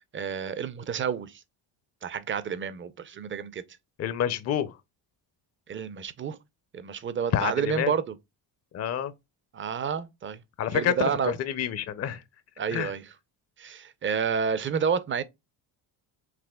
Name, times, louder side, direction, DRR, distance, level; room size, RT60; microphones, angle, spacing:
voice 1, 0.1-1.4 2.0-3.6 5.7-6.4 6.7-8.1 9.5-10.4 10.7-11.3 12.6-13.1 13.6-15.2, right 6 dB, 25° right, 0.5 m, -29 dB
voice 2, 4.0-4.7 7.3-7.9 8.7-9.1 10.6-12.2 12.7-12.9, left 9 dB, 35° left, 0.5 m, -28 dB
4.9 x 2.9 x 2.2 m
supercardioid pair, 70°, 47 cm